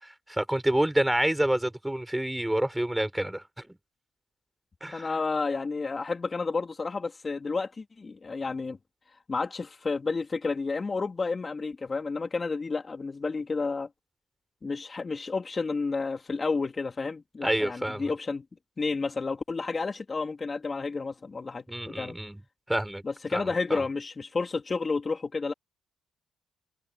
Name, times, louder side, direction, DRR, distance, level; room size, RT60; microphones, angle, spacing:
voice 1, 0.0-3.8 4.8-5.1 17.4-18.1 21.7-22.4 22.7-23.0 23.3-23.8, right 1 dB, 5° right, 4.7 m, -28 dB
voice 2, 4.9-8.8 9.3-13.9 14.6-18.4 18.8-22.2 23.0-25.5, left 4 dB, 30° left, 3.1 m, -31 dB
cardioid pair, 90°, 0 cm